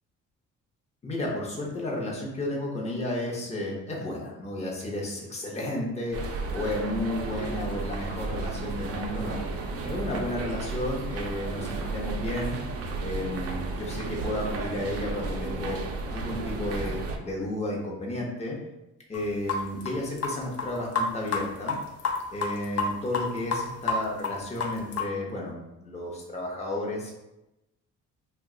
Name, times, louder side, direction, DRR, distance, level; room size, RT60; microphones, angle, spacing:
voice 1, 1.0-9.4 9.8-12.6 13.0-15.8 16.1-18.6 19.1-21.8 22.3-27.1, left 1 dB, 20° left, -2 dB, 0.8 m, -32 dB
sound 1, 6.1-17.2, right 3 dB, 50° right, 0.5 m, -33 dB
sound 2, 19.1-19.2 19.5-20.7 21.0-21.4 21.7-23.3 23.5-25.1, left 4 dB, 55° left, 0.6 m, -28 dB
2.5 x 2.2 x 3.7 m, 0.94 s
cardioid pair, 90°, 30 cm